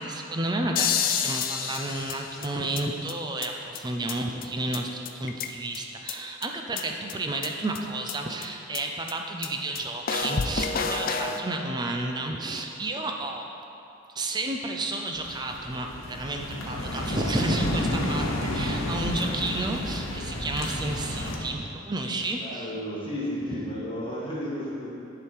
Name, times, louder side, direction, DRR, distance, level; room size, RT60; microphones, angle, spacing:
voice 1, 0.0-13.4 14.2-22.7, right 2 dB, 20° right, 2 dB, 0.5 m, -31 dB
sound 1, 0.8-2.8 3.1-3.2 3.4-3.5 3.8-3.9 4.1-4.2 4.4-4.5 4.7-4.8 5.1-5.8 6.1-6.2 6.4-6.5 6.8-6.9 7.1-7.2 7.4-7.5 7.8-7.9 8.1-8.2 8.4-8.5 8.7-8.8 9.1-9.2 9.4-9.5 9.8-9.9 10.1-11.4, left 6 dB, 45° left, 0.4 m, -29 dB
sound 2, 15.1-21.4, left 1 dB, 90° left, 1.2 m, -31 dB
voice 2, 22.4-24.9, equal, 25° left, -7 dB, 1.8 m, -34 dB
10.0 x 5.0 x 4.6 m, 2.7 s
head